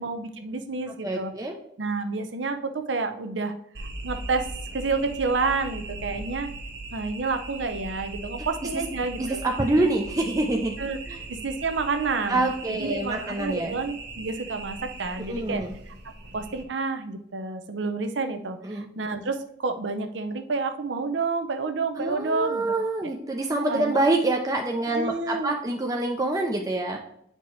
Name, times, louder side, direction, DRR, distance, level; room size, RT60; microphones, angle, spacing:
voice 1, 0.0-1.3 1.8-3.5 3.8-4.5 4.7-6.5 6.9-9.4 10.8-15.9 16.3-22.7 23.7-24.0 24.9-25.5, right 4 dB, 85° right, 8 dB, 0.7 m, -29 dB
voice 2, 1.0-1.6 8.4-8.5 8.7-8.8 9.2-10.8 11.1-11.2 12.3-13.7 15.2-15.7 18.6-18.9 22.0-27.0, right 2 dB, 20° right, 2 dB, 0.5 m, -26 dB
sound 1, 3.7-16.6, right 2 dB, 70° right, 1.2 m, -39 dB
9.3 x 4.4 x 3.1 m, 0.72 s
head